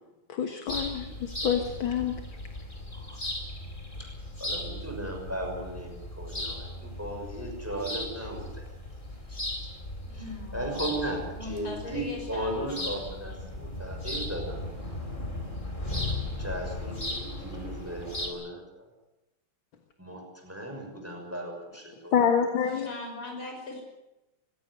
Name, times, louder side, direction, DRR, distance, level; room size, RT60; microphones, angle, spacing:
voice 1, 0.4-1.1 1.4-2.1 22.1-22.9, left 7 dB, 70° left, 6 dB, 2.2 m, -26 dB
sound 1, 0.7-18.3, left 1 dB, 20° left, 3.9 m, -37 dB
voice 2, 4.4-8.7 9.3-9.4 10.1-14.6 16.4-18.9 20.0-22.1, right 1 dB, 5° right, 2 dB, 6.1 m, -36 dB
voice 3, 10.0-10.8 11.4-13.1 22.6-23.8, left 2 dB, 85° left, 2 dB, 7.0 m, -40 dB
20.5 x 17.0 x 9.8 m, 0.97 s
omnidirectional pair, 2.3 m